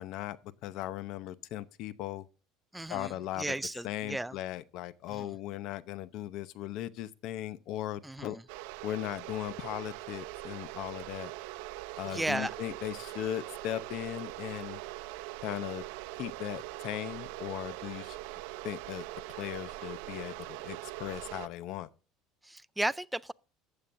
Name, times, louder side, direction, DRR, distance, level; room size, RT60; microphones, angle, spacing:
voice 1, 0.0-2.3 2.9-3.5 3.8-8.4 8.8-11.3 12.0-14.8 15.4-15.8 16.2-18.2 18.6-19.0 19.4-21.9, left 13 dB, 60° left, 0.8 m, -38 dB
voice 2, 2.7-4.3 5.1-5.3 8.0-8.4 12.1-12.5 22.4-23.3, right 1 dB, 5° right, 0.4 m, -35 dB
sound 1, 8.5-21.5, right 18 dB, 80° right, 0.6 m, -42 dB
14.5 x 8.7 x 2.6 m
cardioid pair, 135°, 0 cm